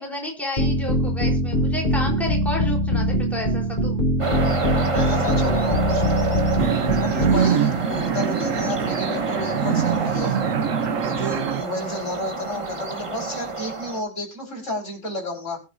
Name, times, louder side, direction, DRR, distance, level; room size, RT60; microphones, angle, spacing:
voice 1, 0.0-4.0 7.1-7.3 11.1-11.3, left 1 dB, ahead, 0 dB, 3.7 m, -31 dB
sound 1, 0.6-7.4, equal, 35° left, 3.8 m, -22 dB
sound 2, 4.2-14.0, right 3 dB, 25° right, 1.1 m, -28 dB
voice 2, 4.9-10.4 11.0-15.6, left 1 dB, 65° left, 0 dB, 5.0 m, -32 dB
sound 3, 6.6-11.6, right 7 dB, 75° right, 1.2 m, -24 dB
21.5 x 7.9 x 2.6 m, 0.26 s
omnidirectional pair, 1.4 m